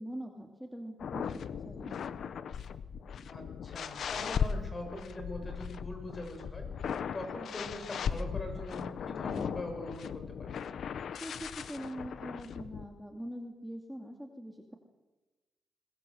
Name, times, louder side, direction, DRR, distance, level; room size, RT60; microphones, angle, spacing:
voice 1, 0.0-2.1 11.2-14.8, equal, 5° right, 2 dB, 2.4 m, -43 dB
sound 1, 1.0-12.9, left 7 dB, 70° left, 1.1 m, -38 dB
voice 2, 3.3-10.6, left 1 dB, 30° left, 4 dB, 7.0 m, -42 dB
21.5 x 21.0 x 7.9 m, 1.1 s
cardioid pair, 105°, 0 cm